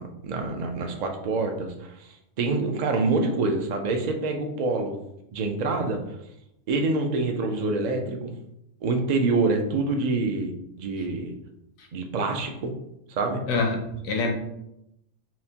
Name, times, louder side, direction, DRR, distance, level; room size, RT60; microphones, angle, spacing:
voice 1, 0.0-5.0 5.3-6.0 6.7-8.3 8.8-10.5 10.8-11.3 11.9-12.7 13.1-13.4, right 3 dB, 75° right, 4 dB, 0.3 m, -26 dB
voice 2, 13.5-14.3, left 3 dB, 85° left, 1 dB, 1.1 m, -26 dB
5.7 x 2.1 x 2.8 m, 0.82 s
omnidirectional pair, 1.4 m